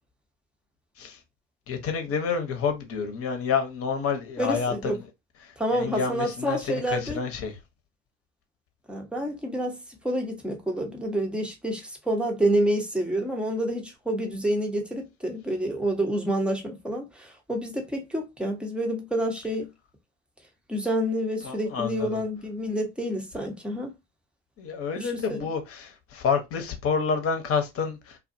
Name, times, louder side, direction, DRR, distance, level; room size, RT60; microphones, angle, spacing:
voice 1, 1.7-5.0 5.4-7.6 21.4-22.2 24.6-28.2, left 6 dB, 40° left, 0.9 m, -29 dB
voice 2, 4.4-5.0 5.6-7.2 8.9-9.8 10.0-19.7 20.7-23.9 25.0-25.5, right 1 dB, 5° right, 0.8 m, -28 dB
2.4 x 2.3 x 2.6 m
hypercardioid pair, 80°, 36 cm